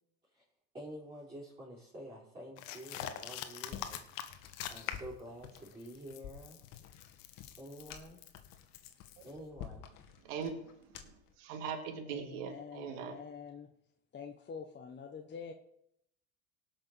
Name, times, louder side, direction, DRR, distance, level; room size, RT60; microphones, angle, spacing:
voice 1, 0.7-4.4 4.7-6.6 7.6-8.2 9.2-9.9, equal, 15° right, 5.1 m, -49 dB
sound 1, 2.6-5.2 5.6-9.3, left 11 dB, 80° left, 1.2 m, -44 dB
sound 2, 3.7-11.3, left 9 dB, 55° left, 2.0 m, -51 dB
voice 2, 10.2-13.2, right 6 dB, 80° right, 2.2 m, -41 dB
voice 3, 12.1-13.7 14.1-15.5, left 6 dB, 30° left, 1.1 m, -46 dB
18.0 x 6.2 x 6.2 m
supercardioid pair, 100°, 38 cm